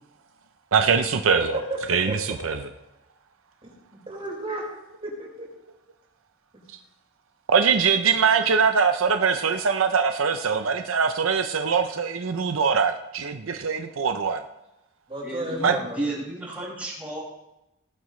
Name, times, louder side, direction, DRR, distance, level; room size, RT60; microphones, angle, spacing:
voice 1, 0.7-1.6 1.9-2.1 2.4-2.6 7.5-14.4 15.6-15.7, right 6 dB, 90° right, 6 dB, 0.7 m, -22 dB
voice 2, 1.4-1.8 2.1-2.2 2.5-2.6 3.6-3.7 4.1-4.6 5.0-5.5 7.9-8.5 15.1-16.0, right 1 dB, 30° right, -3 dB, 5.1 m, -33 dB
voice 3, 15.2-17.2, right 2 dB, 5° right, -6 dB, 5.9 m, -33 dB
18.5 x 12.0 x 3.2 m, 0.92 s
head